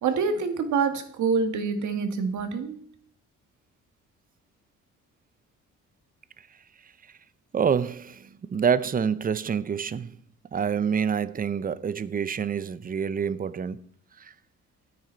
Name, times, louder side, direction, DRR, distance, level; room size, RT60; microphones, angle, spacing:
voice 1, 0.0-2.8, right 5 dB, 75° right, 1.7 m, -26 dB
voice 2, 7.5-10.1 10.5-13.8, right 7 dB, 30° right, 0.6 m, -27 dB
9.4 x 9.2 x 4.4 m
cardioid pair, 90°, 30 cm